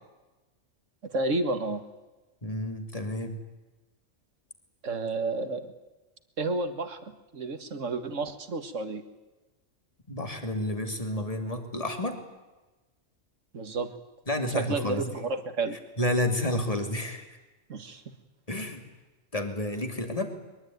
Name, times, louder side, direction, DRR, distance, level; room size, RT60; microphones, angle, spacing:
voice 1, 1.1-1.8 4.8-5.7 6.4-9.0 13.5-13.9 14.5-15.8 17.7-18.0, right 3 dB, 90° right, 9 dB, 2.1 m, -31 dB
voice 2, 2.4-3.4 10.1-12.2 14.3-15.1 16.0-17.3 18.5-18.8 19.3-20.4, left 1 dB, 30° left, 5 dB, 3.0 m, -30 dB
23.0 x 22.0 x 9.4 m, 1.1 s
omnidirectional pair, 1.3 m